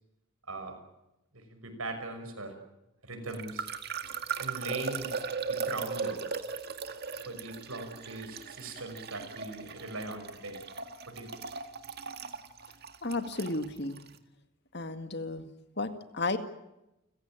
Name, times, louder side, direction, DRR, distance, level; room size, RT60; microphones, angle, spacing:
voice 1, 1.3-2.5 3.0-3.7 4.4-5.1 5.4-6.4 7.2-10.6 11.1-11.3, right 2 dB, 80° right, 6 dB, 6.1 m, -40 dB
sound 1, 3.3-14.1, right 5 dB, 45° right, 1.9 m, -38 dB
voice 2, 13.0-14.0 14.7-15.5 15.8-16.4, left 2 dB, 50° left, 9 dB, 2.0 m, -33 dB
30.0 x 16.0 x 9.0 m, 0.92 s
head